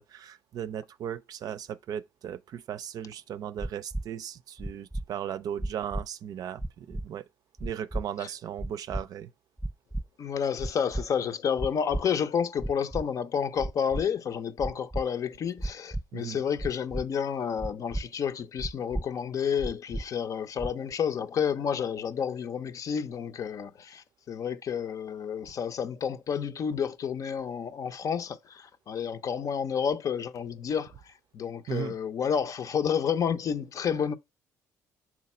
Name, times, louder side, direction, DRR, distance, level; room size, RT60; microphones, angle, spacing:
voice 1, 0.0-7.2 7.6-9.3 16.1-16.4 31.7-31.9, right 9 dB, 60° right, 0.5 m, -37 dB
sound 1, 3.6-4.0 4.6-5.0 5.6-6.0 6.6-7.1 7.6-8.0 8.6-9.0 9.6-10.0 10.6-11.0 11.6-12.0 12.6-13.0 13.6-14.0 14.6-15.0 15.6-16.0 16.6-17.0 17.6-18.0 18.6-19.0 19.6-20.0 20.6-20.9, right 1 dB, ahead, 0.3 m, -33 dB
voice 2, 10.2-30.9 31.3-34.1, left 7 dB, 50° left, 0.6 m, -30 dB
6.1 x 4.0 x 4.3 m
cardioid pair, 85°, 7 cm